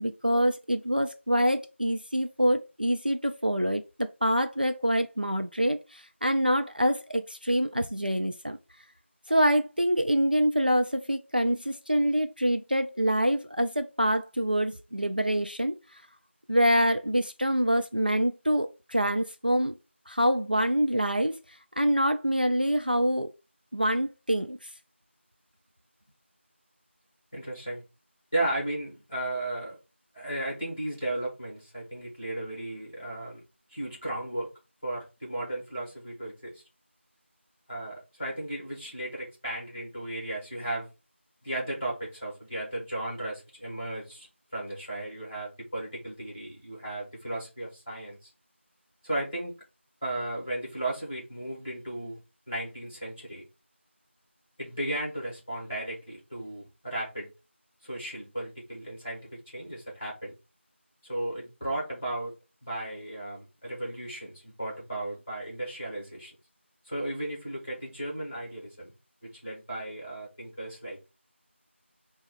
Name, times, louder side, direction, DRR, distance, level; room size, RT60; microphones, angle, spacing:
voice 1, 0.0-8.6 9.3-16.0 16.5-19.8 20.1-23.3 23.7-24.7, equal, 45° right, 0.3 m, -26 dB
voice 2, 27.3-27.8 28.3-29.8 30.1-33.4 33.7-34.5 34.8-36.6 37.7-40.9 41.4-44.3 44.5-48.3 49.0-49.5 50.0-52.2 52.5-53.4 54.6-57.3 57.8-60.3 61.0-62.3 62.6-66.3 66.8-68.9 69.2-71.0, right 1 dB, 15° left, 1.6 m, -35 dB
3.9 x 2.3 x 4.2 m
figure-of-eight pair, 180°, 7 cm